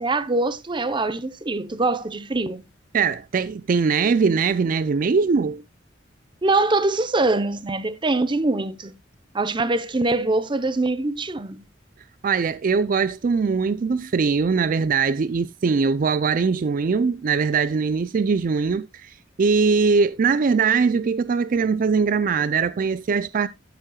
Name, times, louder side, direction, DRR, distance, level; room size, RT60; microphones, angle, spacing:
voice 1, 0.0-2.6 6.4-8.9 9.3-11.6, right 2 dB, 25° right, 0.7 m, -23 dB
voice 2, 2.9-5.6 12.2-23.5, right 5 dB, 45° right, 0.4 m, -21 dB
14.5 x 7.4 x 2.3 m
head